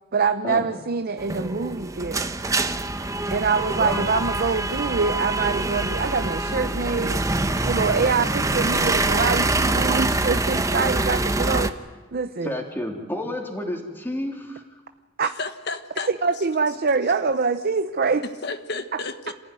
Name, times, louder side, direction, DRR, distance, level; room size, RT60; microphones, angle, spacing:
voice 1, 0.1-2.4 3.3-7.2 7.6-11.7 12.1-12.5 15.2-15.3 16.2-18.2, right 4 dB, 50° right, 10 dB, 0.7 m, -24 dB
sound 1, 1.2-11.7, right 2 dB, 15° right, 0.9 m, -25 dB
voice 2, 12.4-14.6, left 1 dB, 10° left, 1 dB, 3.5 m, -30 dB
voice 3, 15.2-16.1 18.2-19.3, left 3 dB, 60° left, 9 dB, 1.5 m, -32 dB
27.5 x 15.5 x 9.5 m, 1.3 s
head